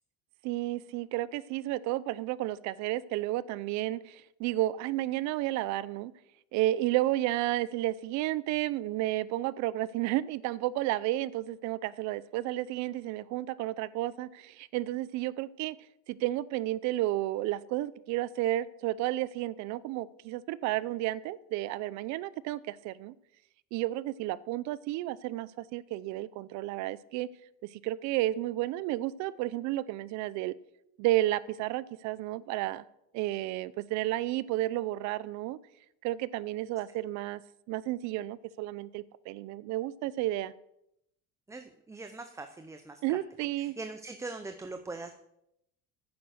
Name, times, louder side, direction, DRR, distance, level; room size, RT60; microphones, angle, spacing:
voice 1, 0.4-6.1 6.5-15.8 16.1-23.1 23.7-27.3 27.8-30.5 31.0-32.8 33.1-35.6 36.0-37.4 37.7-40.5 43.0-43.8, right 15 dB, 70° right, 19 dB, 0.6 m, -32 dB
voice 2, 41.5-43.2 43.6-45.1, right 3 dB, 10° right, 7 dB, 0.7 m, -42 dB
9.4 x 9.3 x 6.4 m, 0.80 s
cardioid pair, 130°, 29 cm